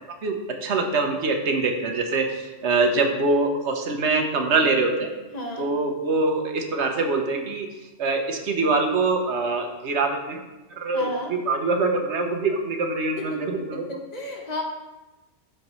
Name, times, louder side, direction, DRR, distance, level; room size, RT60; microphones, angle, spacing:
voice 1, 0.2-5.1 5.6-7.7 8.0-10.4 10.8-13.8, right 3 dB, 70° right, 4 dB, 1.2 m, -24 dB
voice 2, 5.3-5.7 10.9-11.3 13.2-14.6, left 1 dB, 35° left, 1 dB, 1.2 m, -33 dB
13.0 x 4.5 x 3.1 m, 1.1 s
omnidirectional pair, 1.2 m